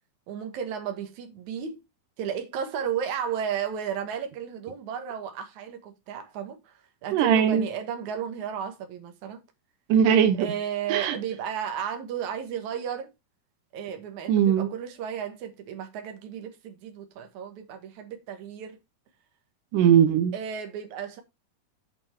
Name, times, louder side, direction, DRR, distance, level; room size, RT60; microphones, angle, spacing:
voice 1, 0.3-1.8 2.2-9.4 10.4-13.1 13.7-18.8 20.3-21.2, right 8 dB, 70° right, 2.8 m, -34 dB
voice 2, 7.1-7.7 9.9-10.5 10.9-11.2 14.3-14.7 19.7-20.3, right 8 dB, 90° right, 2.5 m, -20 dB
8.7 x 5.3 x 4.4 m
omnidirectional pair, 3.6 m